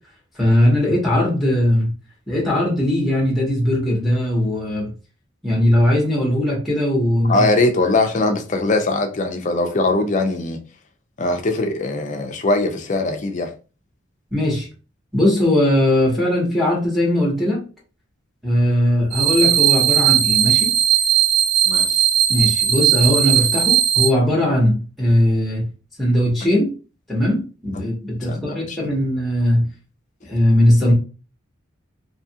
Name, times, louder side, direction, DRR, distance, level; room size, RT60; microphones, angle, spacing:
voice 1, 0.4-1.9 2.3-4.9 5.4-7.4 14.3-14.7 15.1-17.6 18.4-20.7 22.3-25.6 26.0-26.7 27.1-29.7 30.3-30.9, left 1 dB, ahead, 0.8 m, -19 dB
voice 2, 7.3-10.6 11.2-13.5 21.7-21.9 27.7-27.8 28.3-28.8, left 2 dB, 35° left, 0.4 m, -21 dB
sound 1, 19.1-24.1, right 10 dB, 70° right, 0.5 m, -17 dB
2.7 x 2.3 x 2.7 m
head